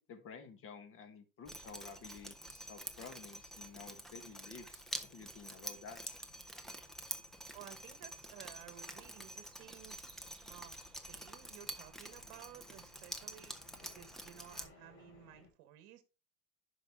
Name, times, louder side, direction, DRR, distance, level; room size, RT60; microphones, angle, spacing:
voice 1, 0.0-6.0, left 5 dB, 30° left, 1.5 m, -52 dB
Drip, 1.5-14.7, right 1 dB, ahead, 0.3 m, -48 dB
sound 1, 4.8-15.5, left 3 dB, 50° left, 3.5 m, -67 dB
voice 2, 7.5-10.0 10.5-16.0, right 12 dB, 50° right, 1.3 m, -55 dB
11.0 x 5.2 x 3.5 m
supercardioid pair, 125°, 46 cm